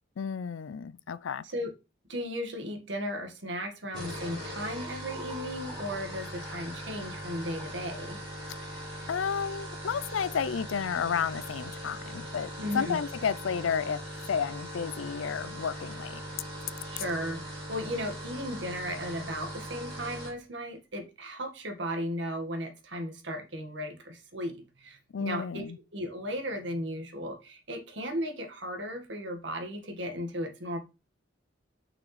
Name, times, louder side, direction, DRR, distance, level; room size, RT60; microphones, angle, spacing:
voice 1, 0.2-1.4 9.1-14.0 14.3-16.2 25.1-25.8, left 6 dB, 80° left, 0.4 m, -32 dB
voice 2, 2.1-8.2 12.6-13.0 16.9-25.7 25.9-30.8, equal, 65° right, 1.8 m, -36 dB
sound 1, 3.8-20.4, equal, 25° right, 3.5 m, -40 dB
6.2 x 5.9 x 3.3 m
head